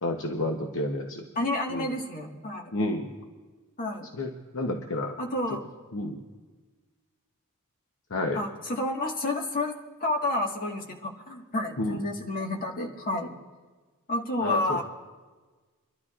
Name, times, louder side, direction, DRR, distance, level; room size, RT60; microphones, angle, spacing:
voice 1, 0.0-1.2 1.7-1.9 2.7-3.1 4.1-5.2 5.9-6.2 8.1-8.4 11.8-12.0 14.4-14.8, left 1 dB, 60° left, 2 dB, 0.9 m, -30 dB
voice 2, 1.3-2.7 3.8-4.1 5.2-5.7 8.3-13.3 14.1-14.8, left 2 dB, 40° left, 0 dB, 1.6 m, -30 dB
30.0 x 12.5 x 2.4 m, 1.3 s
head